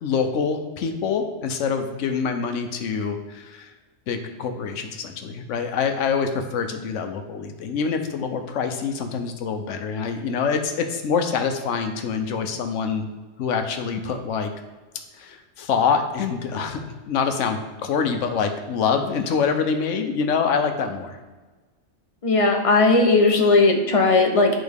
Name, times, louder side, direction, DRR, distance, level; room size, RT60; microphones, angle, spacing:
voice 1, 0.0-3.7 4.1-13.1 13.4-14.5 15.2-21.2, left 6 dB, 85° left, 6 dB, 1.0 m, -25 dB
voice 2, 22.2-24.6, left 3 dB, 40° left, 2 dB, 0.5 m, -17 dB
8.3 x 4.0 x 3.4 m, 1.3 s
omnidirectional pair, 1.3 m